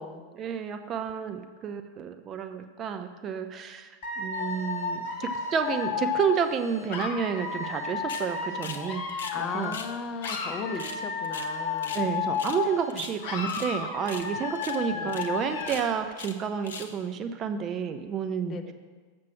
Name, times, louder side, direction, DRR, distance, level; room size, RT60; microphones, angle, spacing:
voice 1, 0.3-3.9 4.2-9.1 9.4-9.8 11.9-18.7, right 7 dB, 30° right, 7 dB, 0.5 m, -30 dB
Dog / Alarm, 4.0-9.9 10.2-12.9 13.2-15.9, left 5 dB, 50° left, 1.1 m, -33 dB
sound 1, 8.1-8.3 8.6-8.8 9.1-9.9 10.2-10.4 10.7-12.1 12.3-12.6 12.9-13.7 14.0-14.3 14.5-14.8 15.1-15.3 15.6-16.4 16.6-17.0, left 5 dB, 65° left, 0.7 m, -40 dB
voice 2, 9.3-12.1 14.9-15.2 18.5-18.7, left 5 dB, 30° left, 7 dB, 0.7 m, -36 dB
7.4 x 6.0 x 5.9 m, 1.4 s
figure-of-eight pair, 90°, 0 cm